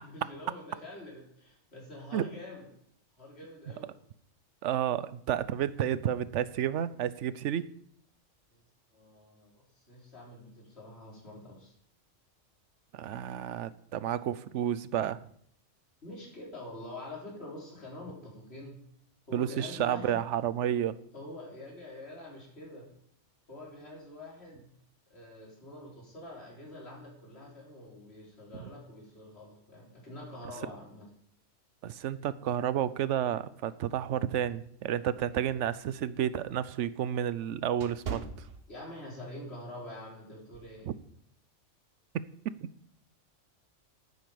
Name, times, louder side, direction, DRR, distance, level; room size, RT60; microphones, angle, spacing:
voice 1, 0.0-2.7 3.2-3.9 8.5-8.6 8.9-11.7 16.0-18.8 19.3-20.2 21.1-22.9 23.5-24.7 25.1-31.1 38.7-40.9, left 1 dB, 55° left, -3 dB, 4.3 m, -46 dB
voice 2, 4.6-7.7 12.9-15.2 19.3-21.0 31.8-38.2 40.9-41.0, right 10 dB, 75° right, 16 dB, 1.0 m, -31 dB
sound 1, 36.3-39.3 39.7-39.9 40.5-40.8, right 6 dB, 55° right, 1.1 m, -42 dB
9.5 x 9.4 x 6.9 m, 0.66 s
omnidirectional pair, 1.3 m